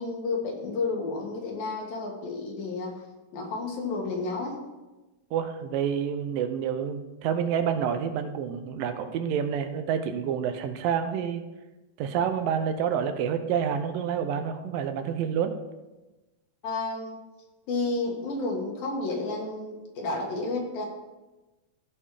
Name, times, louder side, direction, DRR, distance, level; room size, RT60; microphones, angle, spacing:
voice 1, 0.0-3.0 3.3-4.6 16.6-17.2 17.7-20.9, left 3 dB, 75° left, 0 dB, 3.6 m, -31 dB
voice 2, 5.3-11.4 12.0-15.5, right 8 dB, 80° right, 8 dB, 2.4 m, -28 dB
15.5 x 5.5 x 4.9 m, 1.1 s
omnidirectional pair, 4.1 m